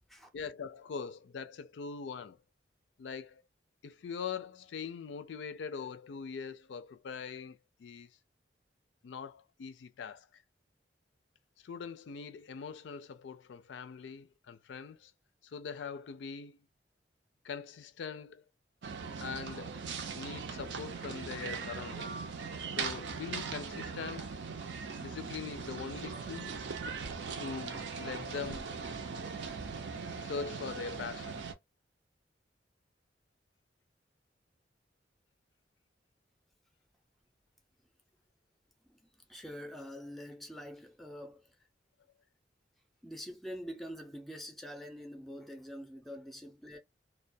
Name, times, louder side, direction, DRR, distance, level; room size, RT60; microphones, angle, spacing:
voice 1, 0.3-2.4 3.0-3.4 3.8-8.1 9.0-10.4 11.6-15.1 15.4-16.6 17.4-18.4 19.2-19.8 20.1-22.3 22.7-24.4 25.0-26.6 27.4-28.8 30.2-31.4, left 6 dB, 80° left, 0.4 m, -42 dB
sound 1, 18.8-31.5, right 5 dB, 75° right, 0.5 m, -40 dB
voice 2, 39.3-41.5 43.0-46.8, equal, ahead, 0.5 m, -45 dB
2.2 x 2.1 x 2.6 m
head